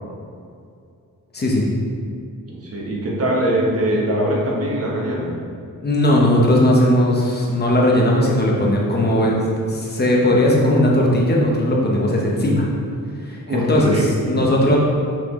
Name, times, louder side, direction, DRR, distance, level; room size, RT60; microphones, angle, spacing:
voice 1, 1.3-1.6 5.8-12.7 13.2-14.8, left 1 dB, 30° left, -3 dB, 1.0 m, -18 dB
voice 2, 2.5-5.4 13.5-14.4, right 1 dB, 45° right, -3 dB, 1.2 m, -22 dB
5.9 x 5.0 x 3.7 m, 2.3 s
wide cardioid pair, 170°, 33 cm